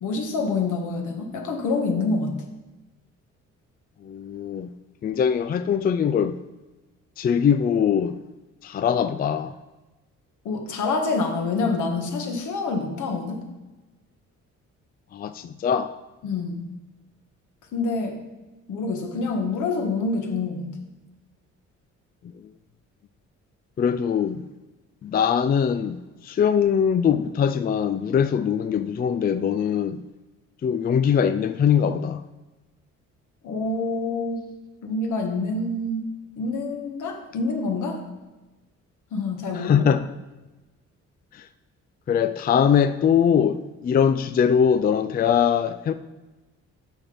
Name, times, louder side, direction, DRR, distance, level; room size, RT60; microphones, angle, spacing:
voice 1, 0.0-2.4 10.4-13.4 16.2-16.6 17.7-18.2 18.7-20.7 33.4-34.4 34.8-36.1 36.4-38.0 39.1-39.9, left 3 dB, 75° left, 1.5 m, -26 dB
voice 2, 4.0-4.7 5.0-6.4 7.2-8.2 8.6-9.5 15.1-15.9 23.8-24.4 25.0-30.0 30.6-32.2 39.5-40.1 41.3-41.4 42.1-45.9, left 7 dB, 30° left, 0.4 m, -22 dB
7.0 x 6.0 x 5.5 m
cardioid pair, 90°, 30 cm